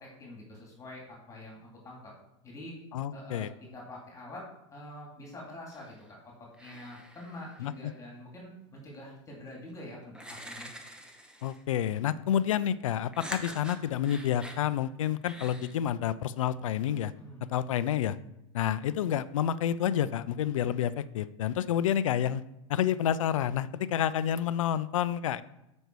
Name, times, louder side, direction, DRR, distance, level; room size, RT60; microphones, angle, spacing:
voice 1, 0.0-2.1 2.4-2.7 3.1-6.2 6.6-10.7 17.1-17.4, left 1 dB, 20° left, -2 dB, 2.8 m, -46 dB
voice 2, 2.9-3.5 7.6-7.9 11.4-17.1 17.5-18.2 18.5-22.4 22.7-25.4, left 10 dB, 80° left, 16 dB, 0.5 m, -29 dB
sound 1, 5.7-6.1 6.5-7.9 9.5-9.6 10.1-11.7 13.1-14.6 15.2-15.7, right 1 dB, 5° right, 1.1 m, -45 dB
8.1 x 5.3 x 4.6 m, 0.91 s
hypercardioid pair, 120°, 16 cm